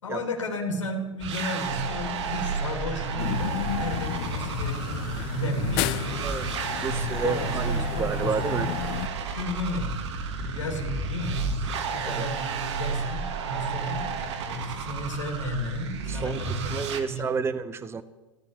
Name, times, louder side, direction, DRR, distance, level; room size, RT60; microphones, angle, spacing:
voice 1, 0.0-5.9 6.8-8.7 9.3-14.1 14.4-17.5, left 1 dB, 85° left, 2 dB, 3.3 m, -33 dB
sound 1, 1.2-17.0, right 5 dB, 70° right, 2.2 m, -32 dB
sound 2, 3.2-9.1, left 12 dB, 55° left, 0.9 m, -32 dB
voice 2, 6.2-8.7 12.0-12.2 16.1-18.0, right 5 dB, 15° right, 13 dB, 0.7 m, -31 dB
14.5 x 12.0 x 8.2 m, 1.2 s
hypercardioid pair, 100°, 15 cm